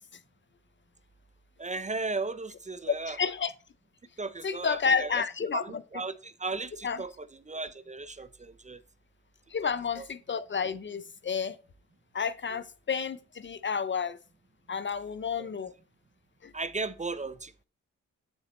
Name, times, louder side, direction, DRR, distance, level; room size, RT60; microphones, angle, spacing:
voice 1, 1.6-3.2 4.2-5.3 5.5-8.8 9.6-9.7 10.0-10.1 12.5-12.6 15.4-15.5 16.5-17.6, right 3 dB, 25° right, 0.4 m, -36 dB
voice 2, 2.9-3.5 4.4-5.6 6.8-7.0 9.5-11.6 12.1-14.2 14.7-15.7 16.4-16.5, left 6 dB, 40° left, 0.4 m, -30 dB
8.7 x 4.0 x 3.0 m
cardioid pair, 45°, 31 cm